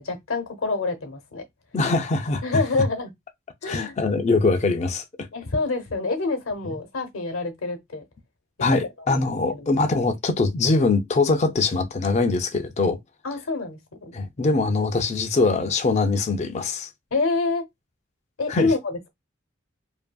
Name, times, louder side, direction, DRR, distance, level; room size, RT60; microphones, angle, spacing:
voice 1, 0.0-1.4 2.4-3.1 3.6-4.0 5.3-8.0 9.1-9.7 13.2-14.2 17.1-17.6 18.4-19.1, left 3 dB, 85° left, 0.8 m, -27 dB
voice 2, 1.7-2.6 3.7-5.0 6.6-6.8 8.6-13.0 14.1-16.9 18.5-18.7, left 3 dB, 35° left, 0.3 m, -22 dB
2.7 x 2.5 x 2.2 m
head